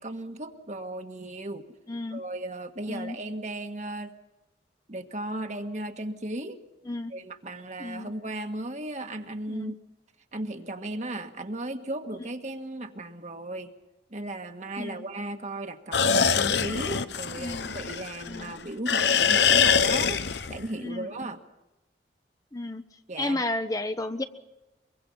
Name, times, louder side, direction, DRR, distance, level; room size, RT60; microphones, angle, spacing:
voice 1, 0.0-1.7 2.1-4.1 4.9-6.6 7.1-9.8 10.3-13.7 14.1-21.4 23.1-23.4, right 1 dB, 40° right, 6 dB, 1.5 m, -36 dB
voice 2, 1.9-2.2 2.9-3.2 6.9-7.1 7.8-8.1 9.5-9.7 14.8-15.1 17.4-17.7 18.3-18.5 20.8-21.3 22.5-22.8 23.2-24.2, left 2 dB, 20° left, 9 dB, 0.9 m, -32 dB
sound 1, 15.9-18.5 18.9-20.7, left 7 dB, 75° left, 0.9 m, -24 dB
23.5 x 23.0 x 5.6 m, 1.0 s
head